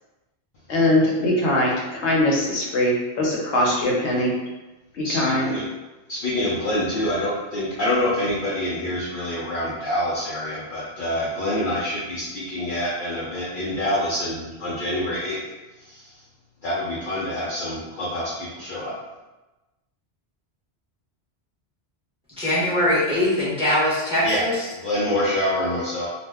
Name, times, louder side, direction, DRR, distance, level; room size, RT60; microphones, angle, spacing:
voice 1, 0.7-4.3 4.9-5.5, left 1 dB, 85° left, -3 dB, 1.0 m, -21 dB
voice 2, 5.0-5.6 6.1-15.4 15.8-16.0 16.6-18.9 24.2-24.5 24.8-26.1, left 1 dB, 60° left, -7 dB, 0.6 m, -26 dB
voice 3, 22.4-24.7, left 1 dB, 5° right, -10 dB, 0.8 m, -22 dB
2.4 x 2.1 x 3.3 m, 1.1 s
omnidirectional pair, 1.1 m